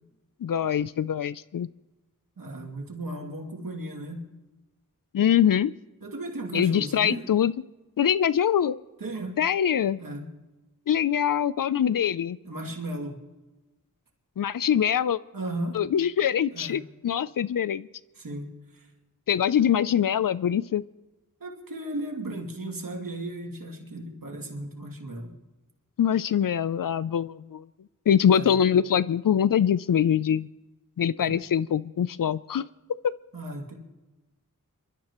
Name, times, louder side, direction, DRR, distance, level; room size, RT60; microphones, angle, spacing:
voice 1, 0.4-1.7 5.1-5.7 6.5-7.5 8.0-8.8 9.4-10.0 10.9-12.4 14.4-15.2 15.7-17.9 19.3-20.8 26.0-27.6 28.1-30.5 31.0-32.7 33.0-33.1, left 9 dB, 80° left, 18 dB, 0.5 m, -23 dB
voice 2, 2.4-4.4 6.0-7.2 9.0-9.4 10.0-10.3 12.4-13.2 15.3-15.9 16.5-16.8 18.2-18.9 21.4-25.4 28.3-28.6 31.2-31.3 33.3-33.7, right 1 dB, 90° right, 1 dB, 2.6 m, -36 dB
27.0 x 13.0 x 3.0 m, 1.1 s
wide cardioid pair, 55°, 33 cm